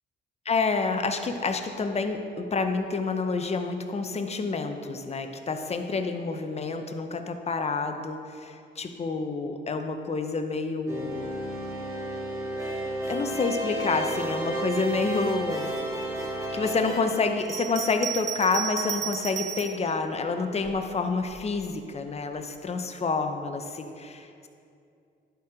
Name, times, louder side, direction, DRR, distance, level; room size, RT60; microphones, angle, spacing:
voice 1, 0.4-11.3 13.1-15.7 16.5-24.5, left 4 dB, 30° left, 6 dB, 0.7 m, -28 dB
sound 1, 10.9-17.0, right 1 dB, 15° right, 1.7 m, -32 dB
sound 2, 13.0-17.9, left 4 dB, 65° left, 1.0 m, -44 dB
Bell, 17.4-19.8 20.6-21.5, right 8 dB, 35° right, 0.6 m, -34 dB
11.5 x 4.4 x 4.9 m, 2.5 s
cardioid pair, 90°, 20 cm